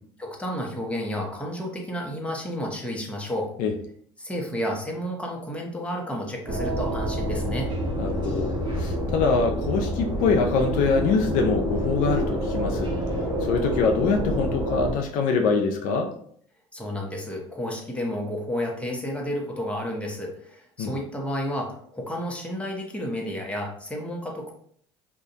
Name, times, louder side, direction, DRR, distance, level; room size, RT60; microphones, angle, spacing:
voice 1, 0.2-3.5 4.2-7.7 16.7-24.5, equal, 10° left, -1 dB, 0.8 m, -31 dB
sound 1, 6.5-14.9, equal, 30° right, 1.1 m, -27 dB
voice 2, 8.0-12.9 13.4-16.1 20.8-20.9, left 4 dB, 65° left, 3 dB, 0.4 m, -24 dB
2.4 x 2.2 x 2.7 m, 0.63 s
hypercardioid pair, 80°, 15 cm